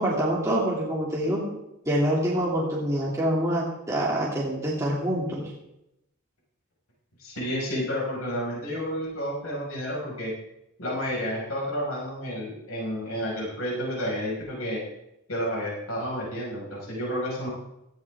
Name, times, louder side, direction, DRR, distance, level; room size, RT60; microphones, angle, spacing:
voice 1, 0.0-1.4 1.9-5.4, right 1 dB, 15° right, -6 dB, 2.6 m, -26 dB
voice 2, 7.2-10.3 10.8-14.8 15.3-17.5, equal, 85° left, -4 dB, 5.4 m, -30 dB
17.5 x 14.0 x 3.6 m, 0.87 s
head